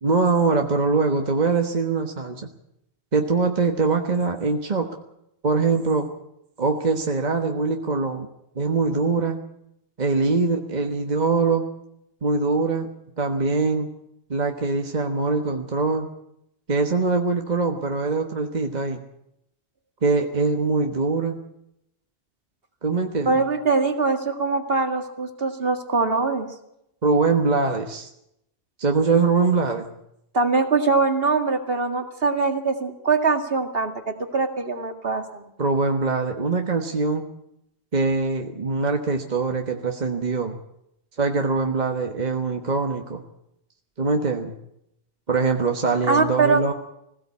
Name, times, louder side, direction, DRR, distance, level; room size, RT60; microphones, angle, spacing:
voice 1, 0.0-2.5 3.1-4.9 5.4-6.1 6.6-8.3 8.5-9.4 10.0-11.6 12.2-12.9 13.2-13.9 14.3-16.1 16.7-19.0 20.0-21.4 22.8-23.4 27.0-28.1 28.8-29.9 35.6-37.2 37.9-40.6 41.2-43.2 44.0-44.5 45.3-46.7, right 4 dB, 40° right, 4 dB, 1.5 m, -23 dB
voice 2, 23.3-26.5 30.3-35.4 46.1-46.7, right 4 dB, 60° right, 6 dB, 2.3 m, -22 dB
21.0 x 17.0 x 8.5 m, 0.80 s
omnidirectional pair, 1.1 m